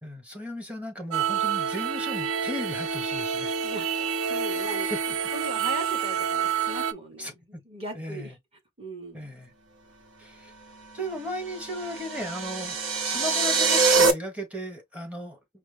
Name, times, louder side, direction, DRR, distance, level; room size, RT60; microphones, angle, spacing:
voice 1, 0.0-3.5 4.9-5.0 7.2-7.6 7.9-8.3 9.1-9.5 10.2-10.5 10.9-15.4, equal, 5° right, 1.2 m, -36 dB
sound 1, 1.1-6.9, right 7 dB, 90° right, 0.5 m, -28 dB
voice 2, 3.6-4.0 4.3-4.9 5.3-8.3 8.8-9.3, right 1 dB, 25° right, 1.6 m, -39 dB
sound 2, 11.5-14.1, right 4 dB, 65° right, 0.9 m, -23 dB
5.1 x 2.1 x 3.3 m
head